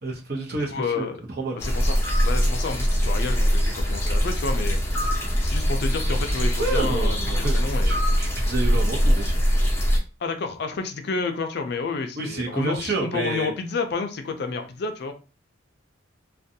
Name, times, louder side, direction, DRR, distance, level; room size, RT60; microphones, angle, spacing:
voice 1, 0.0-1.1 1.4-1.6 5.0-5.1 6.6-7.5 7.8-9.4 12.2-13.5, right 3 dB, 50° right, 1 dB, 0.7 m, -29 dB
voice 2, 0.7-1.2 1.5-4.8 5.4-7.9 10.2-15.1, left 4 dB, 55° left, 6 dB, 0.4 m, -30 dB
sound 1, 1.6-10.0, equal, 15° left, 0.6 m, -22 dB
2.5 x 2.2 x 2.7 m, 0.33 s
head